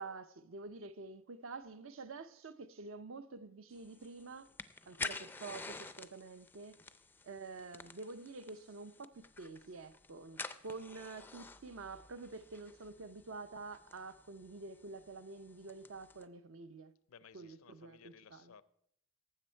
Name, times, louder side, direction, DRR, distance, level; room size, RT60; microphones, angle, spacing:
voice 1, 0.0-4.5 4.9-6.8 7.2-16.9 17.3-18.5, right 3 dB, 60° right, 0.6 m, -48 dB
sound 1, 3.7-16.2, left 3 dB, 10° left, 0.4 m, -50 dB
voice 2, 17.1-18.6, left 7 dB, 70° left, 0.5 m, -59 dB
18.5 x 7.7 x 4.5 m
head